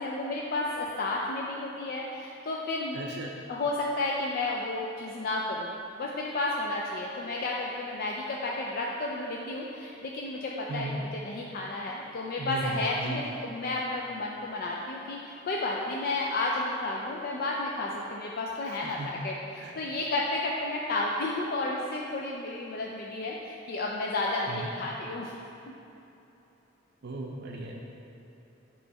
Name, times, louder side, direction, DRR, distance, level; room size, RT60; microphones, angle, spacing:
voice 1, 0.0-3.0 3.5-25.3, left 2 dB, 50° left, -2 dB, 0.4 m, -32 dB
voice 2, 2.9-3.3 10.7-10.9 12.4-13.2 18.7-19.1 19.6-19.8 24.5-24.7 27.0-27.8, right 2 dB, 60° right, -1 dB, 0.5 m, -37 dB
7.9 x 3.1 x 4.7 m, 2.9 s
head